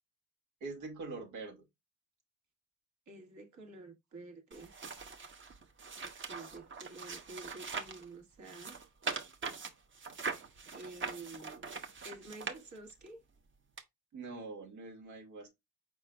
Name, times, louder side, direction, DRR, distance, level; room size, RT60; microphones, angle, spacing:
voice 1, 0.6-1.7 14.1-15.5, right 3 dB, 90° right, 2.1 m, -44 dB
voice 2, 3.1-4.7 6.0-8.8 10.7-11.6 12.0-13.2, right 2 dB, 70° right, 1.8 m, -50 dB
sound 1, 4.5-8.0 8.4-13.1 13.8-13.9, right 5 dB, 40° right, 1.0 m, -42 dB
4.9 x 4.6 x 2.3 m
cardioid pair, 90°, 30 cm